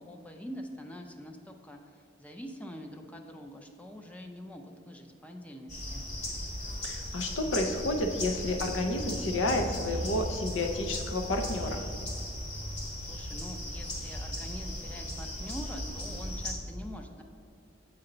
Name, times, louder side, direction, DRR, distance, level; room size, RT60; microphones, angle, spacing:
voice 1, 0.0-6.0 13.1-17.2, equal, 10° left, 3 dB, 0.4 m, -45 dB
sound 1, 5.7-16.5, equal, 35° left, 1.5 m, -37 dB
voice 2, 6.8-11.8, left 2 dB, 90° left, 4 dB, 0.7 m, -30 dB
7.8 x 4.3 x 3.8 m, 2.5 s
head